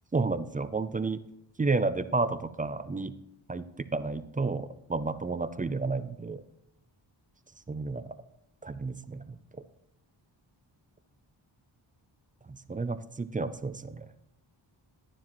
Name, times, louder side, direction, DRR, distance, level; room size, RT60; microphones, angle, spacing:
voice 1, 0.1-1.2 1.6-3.1 3.5-6.4 7.7-8.2 8.6-9.4 12.5-14.1, right 3 dB, 20° right, 12 dB, 0.3 m, -31 dB
11.5 x 9.9 x 3.0 m, 0.77 s
wide cardioid pair, 125°, 47 cm